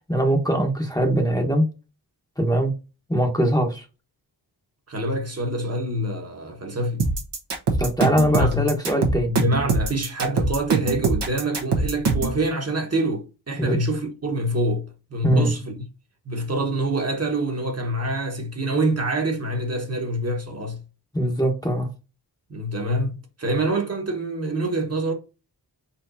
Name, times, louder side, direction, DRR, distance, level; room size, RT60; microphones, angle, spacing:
voice 1, 0.1-1.6 2.4-2.7 3.1-3.8 7.8-9.3 13.6-13.8 15.2-15.5 21.1-21.9, equal, 10° left, 1.0 m, -21 dB
voice 2, 4.9-7.1 8.4-8.7 9.3-15.8 16.2-20.8 22.5-25.1, right 1 dB, 35° right, 1.2 m, -26 dB
sound 1, 7.0-12.4, right 4 dB, 80° right, 1.2 m, -23 dB
4.5 x 4.4 x 2.6 m
wide cardioid pair, 115°, 41 cm